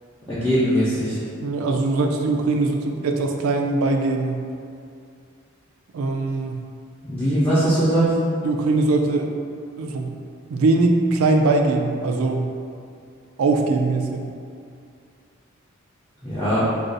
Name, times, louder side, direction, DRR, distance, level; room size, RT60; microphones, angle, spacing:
voice 1, 0.3-1.2 7.0-8.2 16.2-16.6, right 1 dB, 10° left, -13 dB, 0.6 m, -20 dB
voice 2, 1.4-4.4 5.9-6.6 8.4-9.3 9.8-10.1 10.5-12.5 13.4-14.3, right 3 dB, 80° right, 3 dB, 0.3 m, -21 dB
2.5 x 2.3 x 3.8 m, 2.4 s
head